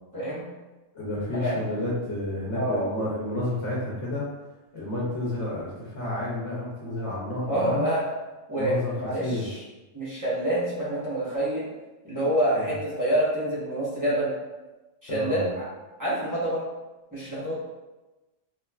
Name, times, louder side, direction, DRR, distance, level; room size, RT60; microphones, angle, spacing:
voice 1, 0.1-0.4 1.3-1.5 2.5-2.9 7.5-8.0 8.5-9.6 9.9-11.7 12.0-14.3 15.0-15.7 16.0-16.6 17.1-17.6, right 1 dB, 20° right, -9 dB, 0.6 m, -27 dB
voice 2, 0.9-4.3 4.7-7.9 8.6-8.9 9.2-9.5 12.5-12.7 15.1-15.5, left 1 dB, 65° left, -6 dB, 0.9 m, -30 dB
3.0 x 2.2 x 2.2 m, 1.1 s
omnidirectional pair, 1.4 m